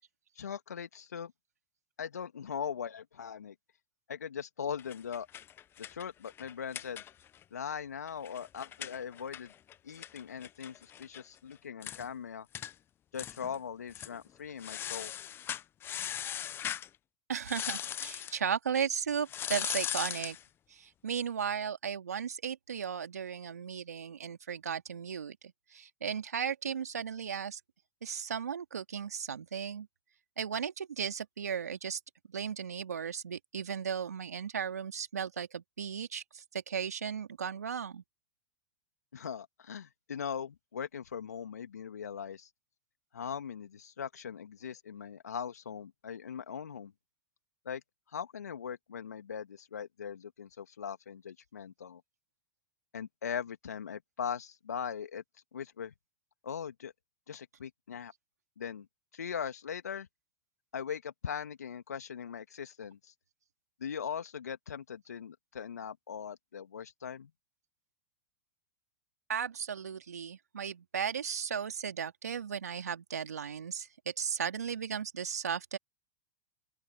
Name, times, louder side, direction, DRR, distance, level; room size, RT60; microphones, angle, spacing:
voice 1, 0.4-1.3 2.0-3.5 4.1-5.3 5.8-7.0 7.5-9.5 9.8-12.5 13.1-15.1 39.1-42.5 43.1-46.9 47.6-47.8 48.1-52.0 52.9-55.2 55.5-55.9 56.4-56.9 57.3-58.1 58.6-58.9 59.1-60.1 60.7-63.1 63.8-67.3, left 7 dB, 80° left, 2.7 m, -40 dB
sound 1, 4.8-7.4 7.7-7.8 8.1-11.2 11.5-11.6 11.8-12.1 12.5-12.7 13.2-13.6 13.9-14.1 14.6-16.9 17.4-18.4 19.3-20.4, left 10 dB, 25° left, 0.7 m, -39 dB
voice 2, 17.3-20.4 20.7-27.6 28.0-29.9 30.4-32.0 32.3-38.0 69.3-75.8, right 7 dB, 80° right, 2.4 m, -36 dB
open air
hypercardioid pair, 100°, 9 cm